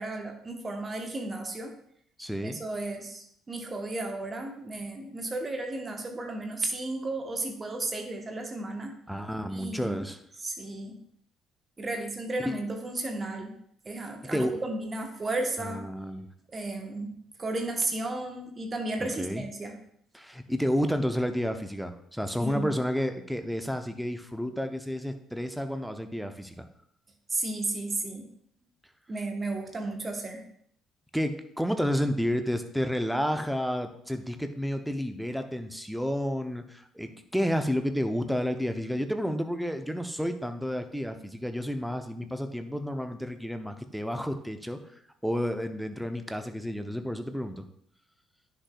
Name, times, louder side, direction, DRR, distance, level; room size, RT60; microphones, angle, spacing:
voice 1, 0.0-1.7 2.4-8.9 9.5-10.0 10.4-11.0 11.8-13.5 13.8-15.8 16.5-17.1 17.4-19.8 22.4-22.7 27.3-28.2 29.1-30.4, right 2 dB, 30° right, 4 dB, 1.2 m, -33 dB
voice 2, 2.2-2.6 9.1-10.2 12.4-12.6 14.3-14.6 15.6-16.3 19.0-19.4 20.1-26.6 31.1-44.8 45.2-47.6, equal, ahead, 7 dB, 0.8 m, -31 dB
10.0 x 6.0 x 2.4 m, 0.69 s
figure-of-eight pair, 50°, 0 cm